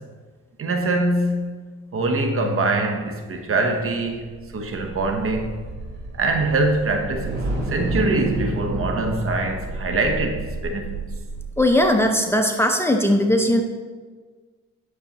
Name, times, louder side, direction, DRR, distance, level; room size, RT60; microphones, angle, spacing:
voice 1, 0.6-1.5 1.9-4.3 4.5-5.6 6.1-7.4 7.7-10.9, right 2 dB, 45° right, 4 dB, 1.0 m, -23 dB
sound 1, 4.2-11.9, right 2 dB, 85° right, 2.6 m, -31 dB
voice 2, 11.6-13.6, left 1 dB, 10° left, 3 dB, 0.7 m, -19 dB
9.7 x 6.6 x 3.0 m, 1.5 s
cardioid pair, 90°, 30 cm